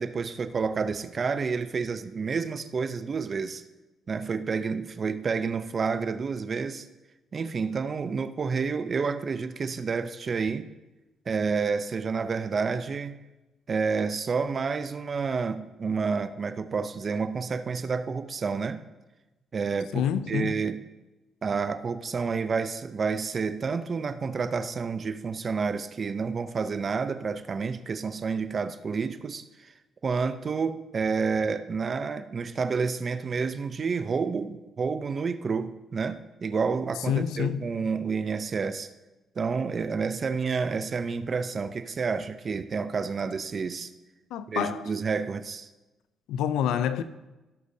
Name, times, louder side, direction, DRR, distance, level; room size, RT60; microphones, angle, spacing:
voice 1, 0.0-3.6 4.1-6.9 7.3-10.7 11.3-13.2 13.7-18.8 19.5-20.8 21.4-29.7 30.0-38.9 39.4-43.9 44.5-45.7, right 5 dB, 40° right, 0.6 m, -29 dB
voice 2, 19.9-20.6 37.1-37.7 44.3-44.9 46.3-47.0, left 9 dB, 90° left, 0.4 m, -27 dB
16.5 x 6.4 x 2.7 m
cardioid pair, 90°, 0 cm